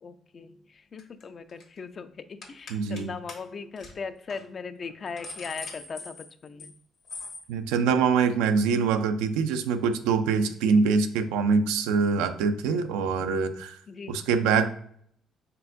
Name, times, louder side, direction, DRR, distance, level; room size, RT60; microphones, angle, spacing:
voice 1, 0.0-6.7 10.4-10.8 13.9-14.2, left 5 dB, 50° left, 11 dB, 0.4 m, -39 dB
sound 1, 1.0-1.2 1.5-1.8 2.4-3.0 3.3-3.4 3.8-3.9 4.3-4.4 4.8-6.8 7.1-7.4, left 3 dB, 65° left, 1.1 m, -41 dB
voice 2, 2.7-3.1 7.5-13.7 14.1-14.7, right 5 dB, 85° right, 9 dB, 0.3 m, -24 dB
4.4 x 3.5 x 2.6 m, 0.66 s
supercardioid pair, 55°, 0 cm